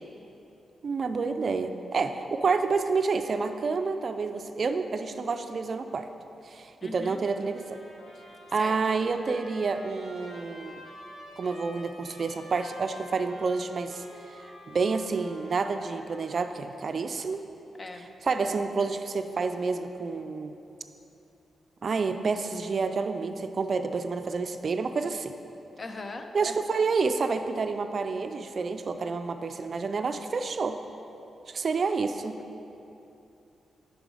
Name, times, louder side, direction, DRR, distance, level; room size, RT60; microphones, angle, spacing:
voice 1, 0.8-6.1 6.5-7.8 8.5-10.7 11.4-14.0 14.7-17.4 18.0-20.5 21.8-25.3 26.3-30.8 31.5-32.4, right 4 dB, 55° right, 8 dB, 0.3 m, -29 dB
voice 2, 6.8-7.2 8.6-8.8 17.8-18.1 25.8-26.3, left 3 dB, 40° left, 5 dB, 0.5 m, -39 dB
Trumpet, 7.4-16.6, left 1 dB, 80° left, 1.1 m, -49 dB
6.1 x 5.1 x 4.8 m, 2.9 s
cardioid pair, 75°, 0 cm